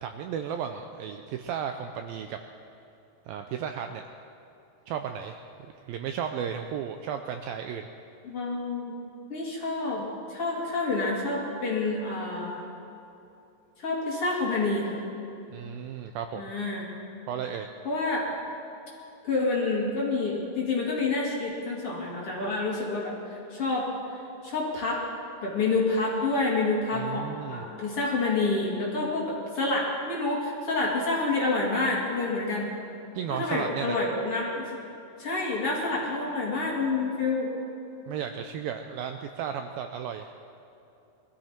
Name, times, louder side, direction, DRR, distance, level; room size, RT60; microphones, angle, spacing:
voice 1, 0.0-2.4 3.3-4.0 4.9-7.9 15.5-16.5 17.3-17.7 26.9-27.7 33.2-34.0 38.1-40.3, right 8 dB, 90° right, 6 dB, 2.1 m, -34 dB
voice 2, 8.2-8.9 9.3-12.6 13.8-15.0 16.3-16.9 17.8-18.3 19.2-23.9 24.4-25.1 25.4-32.7 33.3-34.7 35.2-37.5, left 3 dB, 40° left, -4 dB, 2.6 m, -28 dB
22.0 x 14.5 x 4.4 m, 2.8 s
omnidirectional pair, 4.8 m